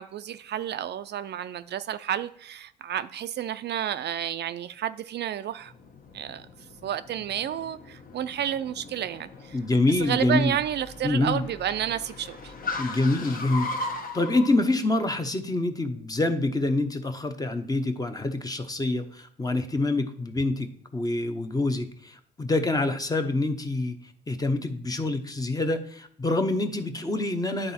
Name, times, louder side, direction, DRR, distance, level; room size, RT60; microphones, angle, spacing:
voice 1, 0.0-5.7 6.1-6.5 6.8-9.6 10.0-12.5, right 10 dB, 60° right, 0.4 m, -31 dB
Car, 5.6-14.5, left 3 dB, 45° left, 1.1 m, -38 dB
voice 2, 9.5-10.6 11.0-11.4 12.8-13.9 14.1-24.0 24.3-27.7, left 2 dB, 20° left, 0.8 m, -26 dB
10.0 x 3.9 x 4.3 m
cardioid pair, 90°, 20 cm